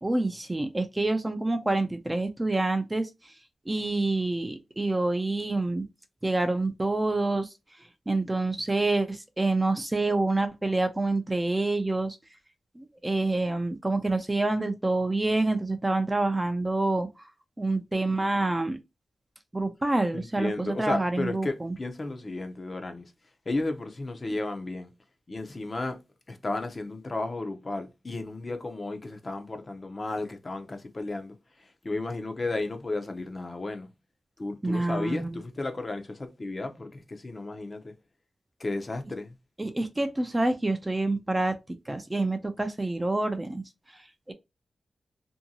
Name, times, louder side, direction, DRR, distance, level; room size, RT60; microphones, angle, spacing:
voice 1, 0.0-3.3 3.7-5.9 6.2-7.5 8.1-12.2 12.8-17.2 17.6-18.8 19.5-21.8 34.6-35.4 39.6-41.6 41.9-44.3, right 2 dB, 15° right, 0.4 m, -27 dB
voice 2, 20.1-23.1 23.5-24.9 25.3-26.0 26.3-33.9 34.4-37.9 38.6-39.3, left 2 dB, 30° left, 0.6 m, -33 dB
2.7 x 2.6 x 2.7 m
wide cardioid pair, 125°, 0 cm